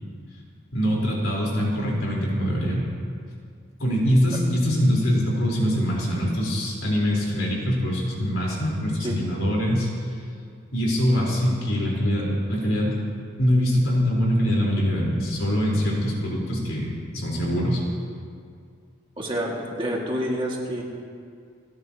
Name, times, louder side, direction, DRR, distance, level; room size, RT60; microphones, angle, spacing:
voice 1, 0.7-2.9 3.8-9.9 10.7-13.0 13.4-17.8, equal, 85° left, -4 dB, 3.9 m, -23 dB
voice 2, 19.2-20.8, equal, 25° right, -3 dB, 2.0 m, -28 dB
29.5 x 10.5 x 2.9 m, 2.2 s
head